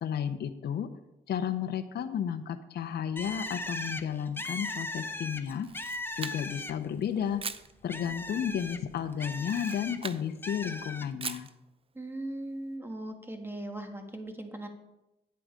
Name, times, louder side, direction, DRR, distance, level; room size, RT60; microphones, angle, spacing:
voice 1, 0.0-0.9 1.3-5.7 6.2-7.4 7.8-11.5, left 8 dB, 55° left, 8 dB, 0.7 m, -32 dB
Bird, 3.2-7.0 7.4-10.0 10.4-11.1, left 2 dB, 10° left, 0.7 m, -38 dB
Camera, 5.5-6.7 7.4-7.7 9.4-10.2 11.2-11.5, right 5 dB, 30° right, 0.5 m, -40 dB
voice 2, 11.9-14.7, right 1 dB, 10° right, 5 dB, 1.6 m, -39 dB
9.5 x 7.7 x 5.1 m, 0.94 s
cardioid pair, 90°, 20 cm